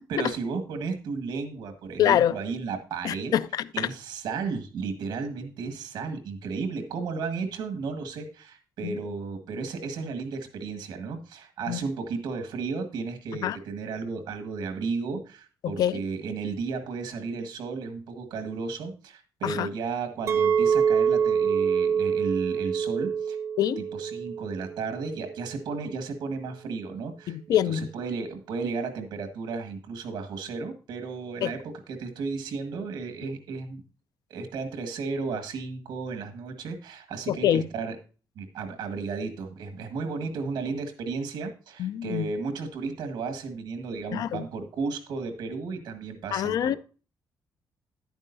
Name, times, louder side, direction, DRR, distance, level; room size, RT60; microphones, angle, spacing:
voice 1, 0.1-3.3 3.7-23.4 23.8-27.4 27.7-33.8 34.3-38.0 38.4-46.7, right 4 dB, 90° right, 1.7 m, -34 dB
voice 2, 2.0-2.4 3.0-3.9 8.8-9.0 11.7-11.8 13.4-13.6 15.6-16.0 19.4-19.7 23.6-23.8 27.3-27.9 31.4-31.5 37.3-37.7 41.8-42.3 44.1-44.4 46.3-46.8, left 10 dB, 60° left, 0.4 m, -25 dB
Chink clink, 20.3-25.4, right 7 dB, 40° right, 0.6 m, -26 dB
11.0 x 9.0 x 2.7 m
cardioid pair, 175°, 7 cm